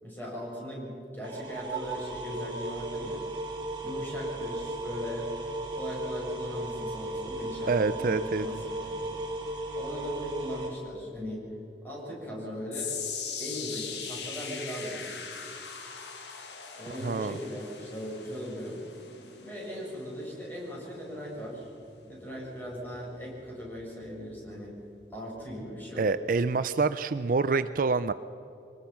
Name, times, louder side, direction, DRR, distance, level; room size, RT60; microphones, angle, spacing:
voice 1, 0.0-3.2 3.8-5.3 5.7-9.0 9.7-11.4 11.8-12.9 13.4-15.1 16.8-18.8 19.4-21.7 22.0-24.7 25.1-26.1, equal, 10° left, -4 dB, 6.6 m, -38 dB
sound 1, 1.2-10.7, right 1 dB, 25° right, 4.0 m, -36 dB
voice 2, 7.7-8.5 17.0-17.4 26.0-28.1, right 4 dB, 50° right, 13 dB, 0.4 m, -26 dB
sound 2, 12.7-25.0 25.3-25.7 26.3-26.4, left 6 dB, 80° left, 1.9 m, -41 dB
23.5 x 20.0 x 5.8 m, 2.9 s
head